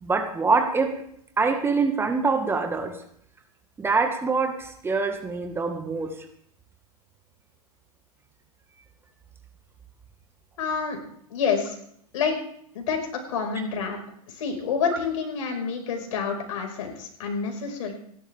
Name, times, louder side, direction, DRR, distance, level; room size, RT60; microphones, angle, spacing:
voice 1, 0.0-1.0 1.4-3.0 3.8-6.2, right 4 dB, 10° right, 5 dB, 1.8 m, -24 dB
voice 2, 10.6-11.0 11.3-11.8 12.1-12.3 12.7-14.0 14.3-17.9, left 6 dB, 60° left, 3 dB, 5.4 m, -28 dB
29.0 x 12.0 x 3.6 m, 0.69 s
hypercardioid pair, 110°, 19 cm